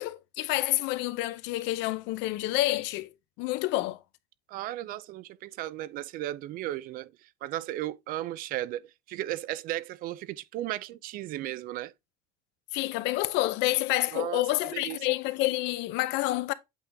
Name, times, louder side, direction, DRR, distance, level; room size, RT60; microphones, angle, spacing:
voice 1, 0.0-3.1 3.4-4.0 12.7-16.5, left 17 dB, 75° left, 0.7 m, -28 dB
voice 2, 4.5-11.9 14.1-14.4 14.7-15.0, right 14 dB, 50° right, 0.4 m, -35 dB
8.4 x 3.7 x 3.4 m
cardioid pair, 170°, 18 cm